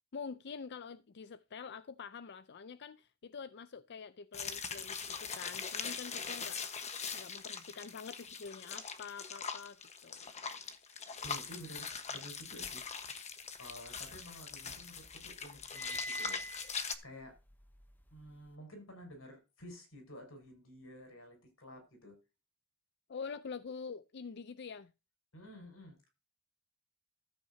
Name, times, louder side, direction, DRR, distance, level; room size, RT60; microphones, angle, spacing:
voice 1, 0.1-6.6 7.1-10.3 23.1-24.9, left 5 dB, 55° left, 0.5 m, -46 dB
sound 1, 4.3-17.0, left 6 dB, 35° left, 1.2 m, -42 dB
voice 2, 11.2-12.8 13.3-16.4 17.0-17.4 18.1-22.2 25.3-26.1, equal, 90° left, 5.7 m, -52 dB
sound 2, 13.7-14.8 15.1-18.5, equal, 10° left, 0.8 m, -46 dB
13.5 x 8.6 x 2.7 m
head